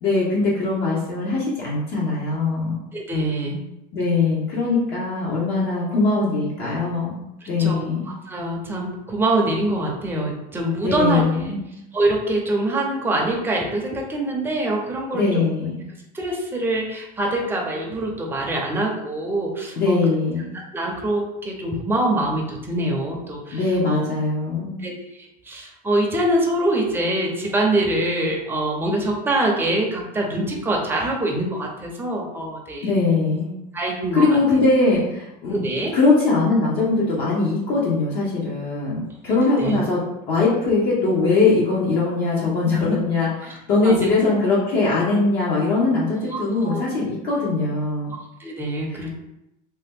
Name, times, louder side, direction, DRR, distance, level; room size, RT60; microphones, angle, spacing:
voice 1, 0.0-2.8 3.9-7.1 7.5-8.0 10.8-11.6 15.1-15.8 19.8-20.5 23.5-24.8 32.8-33.5 34.1-35.6 35.9-48.1 48.9-49.2, left 3 dB, 55° left, -5 dB, 0.8 m, -21 dB
voice 2, 2.9-3.6 7.4-7.8 8.3-11.2 11.9-15.4 16.1-20.0 20.7-23.6 23.9-24.0 24.8-24.9 25.5-33.0 33.7-34.2 35.5-35.9 39.6-39.8 43.4-43.5 43.8-44.1 46.3-46.4 46.6-46.8 48.4-49.2, right 1 dB, 10° right, -1 dB, 0.6 m, -24 dB
2.8 x 2.1 x 3.5 m, 0.87 s
cardioid pair, 130°, 20 cm